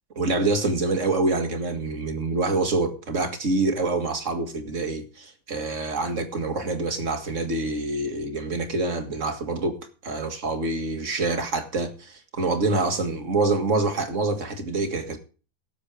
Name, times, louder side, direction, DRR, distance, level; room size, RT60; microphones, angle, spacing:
voice 1, 0.2-15.2, right 3 dB, 45° right, 2.1 m, -26 dB
17.5 x 7.5 x 4.9 m
omnidirectional pair, 1.8 m